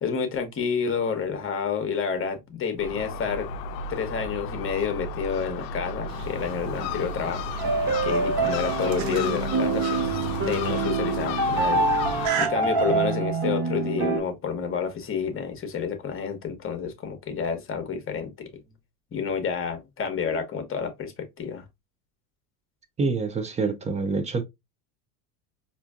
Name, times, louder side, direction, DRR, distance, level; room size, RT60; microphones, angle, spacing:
voice 1, 0.0-3.5 3.9-7.5 8.0-11.9 12.4-18.3 19.1-21.6, left 6 dB, 25° left, 1.0 m, -29 dB
Gull seagull, 2.8-12.3, left 3 dB, 85° left, 0.5 m, -33 dB
sound 1, 6.1-12.5, right 7 dB, 60° right, 0.8 m, -37 dB
sound 2, 7.6-14.2, right 3 dB, 35° right, 1.4 m, -26 dB
voice 2, 23.0-24.4, right 4 dB, 15° right, 0.4 m, -26 dB
4.3 x 2.6 x 2.3 m
supercardioid pair, 105°, 49 cm